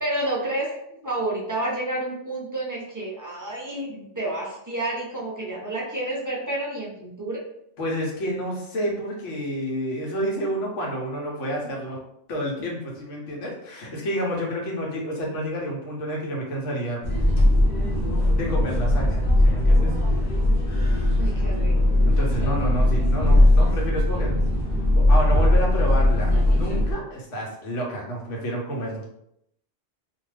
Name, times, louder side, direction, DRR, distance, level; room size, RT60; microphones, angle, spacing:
voice 1, 0.0-7.4 21.2-21.8, right 1 dB, 25° right, -4 dB, 0.4 m, -30 dB
voice 2, 7.8-12.0 12.3-17.0 18.3-19.9 22.0-24.3 24.9-29.0, equal, 90° left, -2 dB, 1.2 m, -29 dB
sound 1, 17.0-26.9, left 1 dB, 50° left, 0.8 m, -19 dB
2.5 x 2.3 x 3.2 m, 0.75 s
omnidirectional pair, 1.2 m